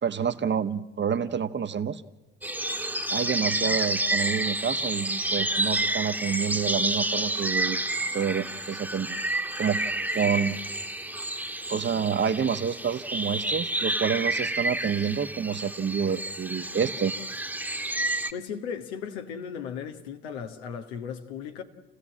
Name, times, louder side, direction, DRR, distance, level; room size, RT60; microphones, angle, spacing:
voice 1, 0.0-2.0 3.1-7.8 8.1-9.2 9.6-9.8 10.1-10.6 11.7-17.1, right 7 dB, 35° right, 1.2 m, -28 dB
sound 1, 2.4-18.3, right 1 dB, 5° right, 1.5 m, -29 dB
voice 2, 18.3-21.6, left 7 dB, 85° left, 1.7 m, -36 dB
29.0 x 15.5 x 7.4 m
hypercardioid pair, 55°, 32 cm